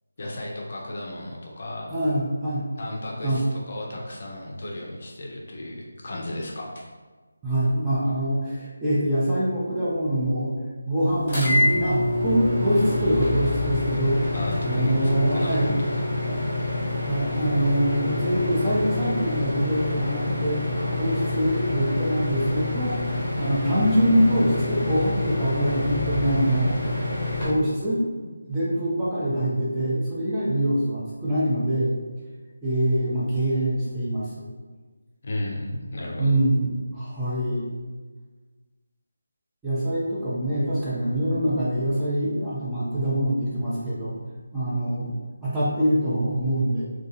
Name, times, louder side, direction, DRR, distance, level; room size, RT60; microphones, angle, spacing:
voice 1, 0.2-1.9 2.8-6.9 14.3-16.1 35.2-36.4, left 1 dB, 50° left, -2 dB, 0.5 m, -34 dB
voice 2, 1.9-2.6 3.2-3.4 7.4-10.5 10.8-14.2 14.6-15.8 16.3-16.4 17.0-20.6 21.0-23.0 23.4-26.8 27.4-31.9 32.6-34.5 36.2-37.7 39.6-44.1 44.5-45.1 45.4-46.8, right 1 dB, 5° right, -11 dB, 0.5 m, -24 dB
sound 1, 11.3-27.5, left 2 dB, 20° left, 1.0 m, -27 dB
2.3 x 2.2 x 2.8 m, 1.4 s
figure-of-eight pair, 160°, 0 cm